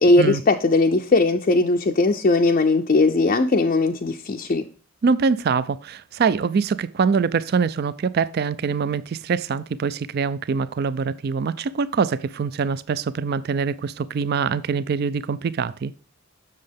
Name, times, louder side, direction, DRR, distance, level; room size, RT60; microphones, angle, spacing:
voice 1, 0.0-4.6, left 2 dB, 40° left, 0.4 m, -19 dB
voice 2, 5.0-15.9, right 5 dB, 45° right, 0.3 m, -24 dB
7.5 x 6.5 x 3.4 m
head